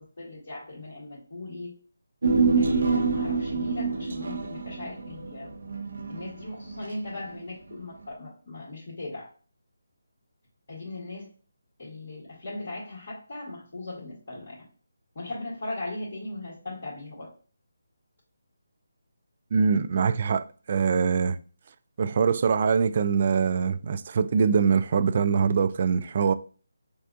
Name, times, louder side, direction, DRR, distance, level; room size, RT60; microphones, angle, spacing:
voice 1, 0.2-1.7 2.6-5.5 6.1-9.3 10.7-11.3 11.8-14.6 15.2-17.3, left 2 dB, 50° left, 1.8 m, -38 dB
Human voice, 2.2-6.8 7.1-7.2, right 4 dB, 60° right, 0.7 m, -26 dB
voice 2, 19.5-21.4 22.0-26.3, right 6 dB, 40° right, 0.3 m, -23 dB
6.5 x 2.4 x 2.5 m
figure-of-eight pair, 155°, 0 cm